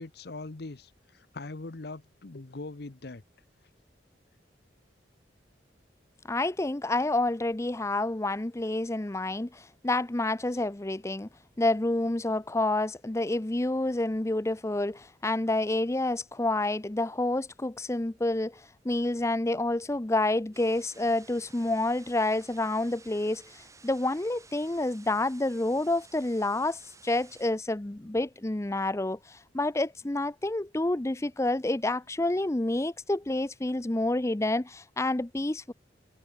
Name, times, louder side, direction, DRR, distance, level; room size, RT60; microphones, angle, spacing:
voice 1, 0.0-3.2, left 3 dB, 60° left, 0.9 m, -41 dB
voice 2, 6.3-11.3 11.6-35.7, left 2 dB, 15° left, 0.6 m, -29 dB
sound 1, 20.5-27.5, right 4 dB, 15° right, 4.7 m, -55 dB
head